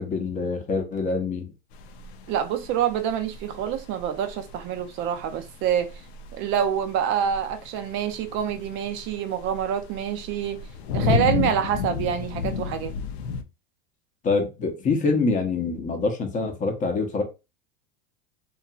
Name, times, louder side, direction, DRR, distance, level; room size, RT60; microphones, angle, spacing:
voice 1, 0.0-1.5 14.2-17.2, left 3 dB, 25° left, 0.7 m, -25 dB
sound 1, 1.7-13.4, left 6 dB, 90° left, 0.5 m, -32 dB
voice 2, 2.3-5.9 6.3-10.6 10.9-12.9, right 9 dB, 40° right, 0.4 m, -26 dB
2.8 x 2.4 x 2.3 m
supercardioid pair, 130°, 31 cm